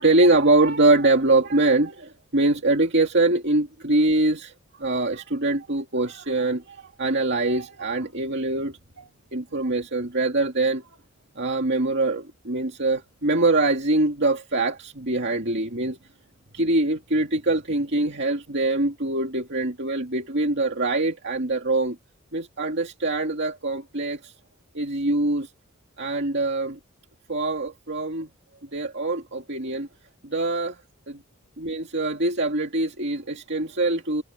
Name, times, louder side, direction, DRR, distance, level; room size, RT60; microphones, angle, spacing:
voice 1, 0.0-4.5 4.8-10.8 11.4-16.0 16.5-22.0 22.3-24.3 24.7-25.5 26.0-26.8 27.3-28.3 28.7-29.9 30.2-30.8 31.1-31.2 31.6-34.2, right 2 dB, 55° right, 2.4 m, -23 dB
head